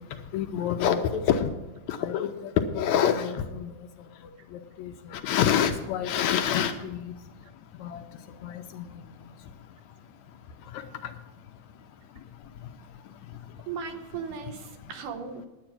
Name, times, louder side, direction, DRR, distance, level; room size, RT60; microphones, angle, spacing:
voice 1, 0.3-1.5 1.9-3.7 4.8-7.1 7.8-8.0 8.4-8.9, left 9 dB, 75° left, 7 dB, 1.8 m, -27 dB
voice 2, 13.7-15.5, right 6 dB, 85° right, 7 dB, 2.6 m, -37 dB
10.0 x 9.6 x 6.0 m, 1.1 s
omnidirectional pair, 3.6 m